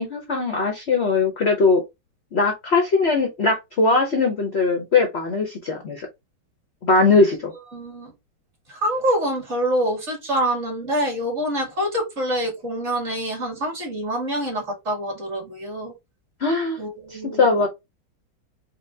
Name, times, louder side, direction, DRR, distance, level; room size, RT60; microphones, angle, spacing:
voice 1, 0.0-1.8 2.3-6.1 6.8-7.5 16.4-16.8 17.1-17.7, left 3 dB, 55° left, 0.7 m, -20 dB
voice 2, 7.7-8.1 8.7-15.9 16.8-17.5, right 1 dB, 40° right, 1.8 m, -26 dB
5.0 x 2.2 x 3.3 m
omnidirectional pair, 2.1 m